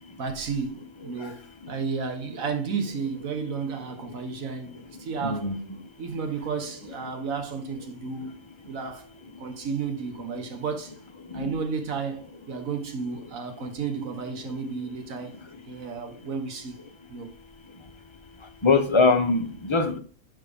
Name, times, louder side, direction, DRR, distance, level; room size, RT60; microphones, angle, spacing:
voice 1, 0.2-5.5 6.0-8.4 8.7-11.0 11.3-15.4 15.7-16.8 17.1-17.3, right 5 dB, 75° right, 1.6 m, -32 dB
voice 2, 5.2-5.6 11.3-11.5 18.6-20.0, left 3 dB, 35° left, 0.5 m, -22 dB
10.5 x 4.1 x 3.4 m
omnidirectional pair, 1.5 m